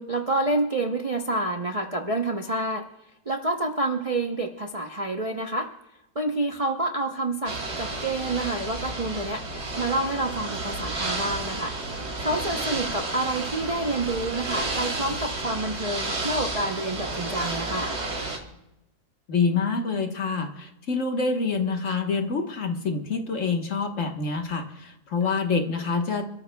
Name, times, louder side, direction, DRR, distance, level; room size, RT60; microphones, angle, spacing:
voice 1, 0.0-2.8 3.3-5.7 6.2-9.4 9.8-11.7 12.2-17.9, right 2 dB, 35° right, 3 dB, 0.6 m, -28 dB
Ocean / Boat Water vehicle, 7.5-18.4, right 2 dB, 75° right, 2.9 m, -31 dB
voice 2, 19.3-26.2, left 4 dB, 55° left, 4 dB, 1.6 m, -26 dB
27.0 x 13.5 x 2.3 m, 0.90 s
omnidirectional pair, 1.7 m